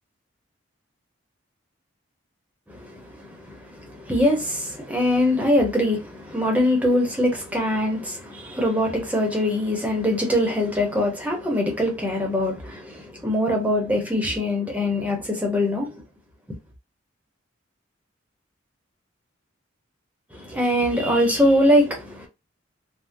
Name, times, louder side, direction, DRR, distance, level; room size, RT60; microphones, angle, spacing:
voice 1, 2.7-15.9 20.3-22.3, left 1 dB, 5° right, 0.9 m, -23 dB
3.6 x 2.2 x 2.7 m
head